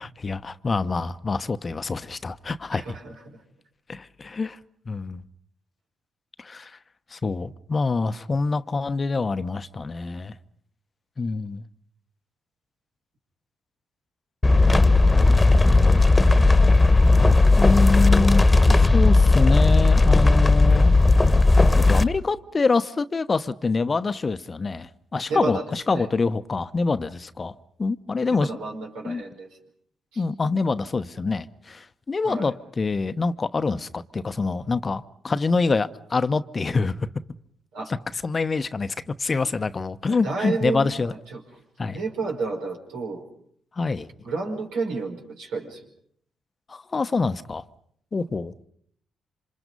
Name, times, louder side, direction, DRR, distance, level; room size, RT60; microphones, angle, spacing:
voice 1, 0.0-2.9 3.9-4.6 4.9-5.2 6.4-6.8 7.1-10.3 11.2-11.6 15.2-16.0 17.6-18.4 18.7-20.9 21.8-28.5 29.0-29.2 30.2-37.1 37.9-38.0 38.2-41.1 41.8-42.0 43.8-44.1 46.7-47.6 48.1-48.5, left 4 dB, 40° left, 1.0 m, -26 dB
voice 2, 2.7-3.4 25.3-26.1 28.3-29.5 30.1-30.2 32.2-32.5 37.7-37.9 40.1-41.4 41.9-43.2 44.2-45.8, right 3 dB, 80° right, 5.0 m, -31 dB
sound 1, 14.4-22.0, left 3 dB, 25° left, 1.4 m, -16 dB
27.0 x 26.5 x 5.4 m
hypercardioid pair, 45°, 0 cm